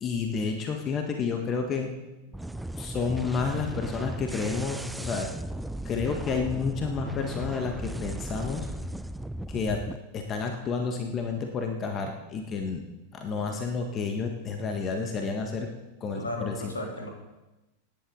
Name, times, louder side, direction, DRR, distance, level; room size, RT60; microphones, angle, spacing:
voice 1, 0.0-1.9 2.8-5.3 5.8-8.7 9.5-9.8 10.1-12.8 13.1-15.7 16.0-16.6, left 5 dB, 30° left, 4 dB, 1.6 m, -30 dB
sound 1, 2.3-10.0, right 1 dB, 5° right, 0.5 m, -36 dB
voice 2, 16.1-17.1, left 1 dB, 75° left, 0 dB, 3.6 m, -35 dB
25.5 x 10.5 x 4.0 m, 1.0 s
figure-of-eight pair, 90°, 0 cm